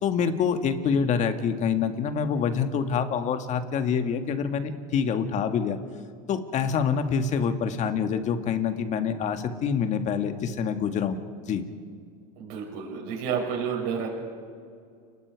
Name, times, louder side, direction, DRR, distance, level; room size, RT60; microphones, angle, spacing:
voice 1, 0.0-5.8 6.3-11.2 11.5-11.6, left 6 dB, 35° left, 8 dB, 1.8 m, -26 dB
voice 2, 12.3-14.1, right 6 dB, 60° right, -3 dB, 6.7 m, -30 dB
30.0 x 20.0 x 4.7 m, 2.2 s
supercardioid pair, 125°, 21 cm